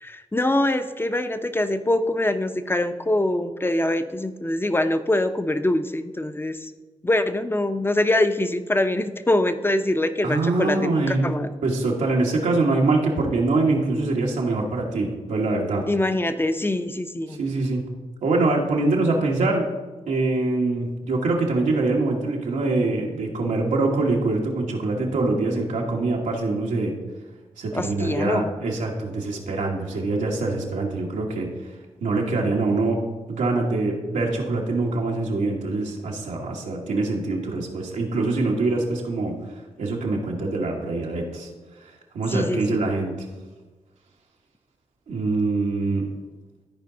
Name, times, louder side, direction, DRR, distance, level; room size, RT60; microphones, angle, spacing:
voice 1, 0.0-6.7 7.0-11.5 15.9-17.4 27.7-28.5 42.3-42.8, left 1 dB, 15° left, 10 dB, 0.8 m, -24 dB
voice 2, 10.2-11.3 11.6-15.9 17.3-17.9 18.2-19.7 20.1-27.0 27.6-31.5 32.0-33.0 33.3-39.3 39.8-41.5 42.1-43.1 45.1-46.1, right 3 dB, 90° right, -1 dB, 1.4 m, -24 dB
13.5 x 4.7 x 3.9 m, 1.3 s
supercardioid pair, 40°, 13 cm